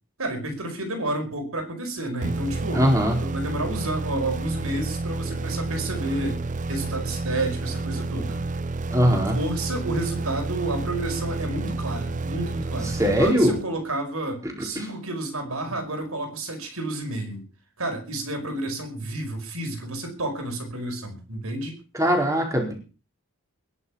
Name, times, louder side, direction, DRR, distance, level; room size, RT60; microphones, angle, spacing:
voice 1, 0.2-2.9 3.2-6.4 6.7-8.4 9.3-17.4 17.8-21.7, right 2 dB, 75° right, 6 dB, 5.1 m, -30 dB
sound 1, 2.2-13.9, right 3 dB, 35° right, 0.7 m, -30 dB
voice 2, 2.7-3.2 8.9-9.4 12.8-13.5 14.4-14.9 21.9-22.7, equal, 15° right, 1 dB, 4.4 m, -21 dB
21.0 x 7.1 x 7.2 m, 0.36 s
head